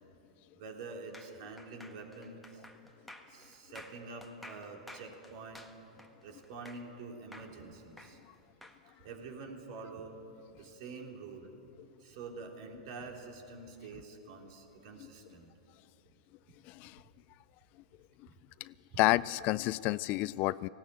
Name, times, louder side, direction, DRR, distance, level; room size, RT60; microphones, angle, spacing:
voice 1, 0.5-2.6 3.3-5.7 6.2-8.2 9.0-10.2 10.5-11.5 12.0-15.5 18.3-18.4, right 3 dB, 55° right, 2 dB, 3.4 m, -47 dB
sound 1, 1.1-7.0 7.3-8.8, left 1 dB, ahead, 1.6 m, -52 dB
voice 2, 16.7-17.0 18.6-20.7, left 19 dB, 45° left, 20 dB, 0.4 m, -30 dB
18.5 x 16.5 x 9.0 m, 2.9 s
hypercardioid pair, 105°, 4 cm